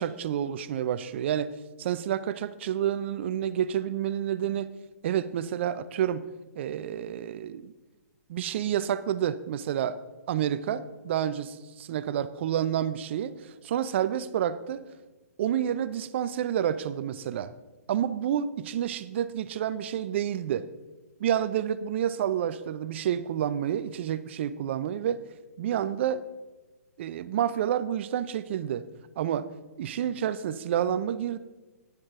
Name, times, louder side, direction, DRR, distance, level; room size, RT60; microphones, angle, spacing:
voice 1, 0.0-1.5 1.8-4.7 5.0-6.3 6.6-7.7 8.3-10.0 10.3-14.8 15.4-17.5 17.9-20.7 21.2-25.2 25.6-26.2 27.0-28.9 29.2-29.5 29.8-31.4, right 10 dB, 45° right, 15 dB, 0.5 m, -29 dB
9.9 x 9.8 x 3.6 m, 1.2 s
figure-of-eight pair, 130°, 9 cm